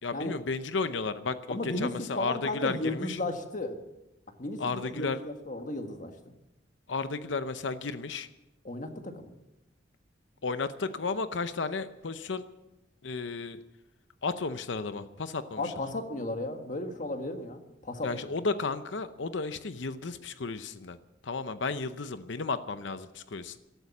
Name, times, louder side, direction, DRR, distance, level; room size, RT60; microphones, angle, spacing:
voice 1, 0.0-3.2 4.6-5.2 6.9-8.3 10.4-12.4 13.0-13.6 14.2-15.7 18.0-21.0 21.2-23.6, left 4 dB, 70° left, 12 dB, 0.7 m, -33 dB
voice 2, 1.5-3.7 4.4-6.1 8.6-9.3 15.6-18.3, left 2 dB, 40° left, 6 dB, 1.6 m, -34 dB
15.0 x 12.5 x 7.2 m, 0.95 s
head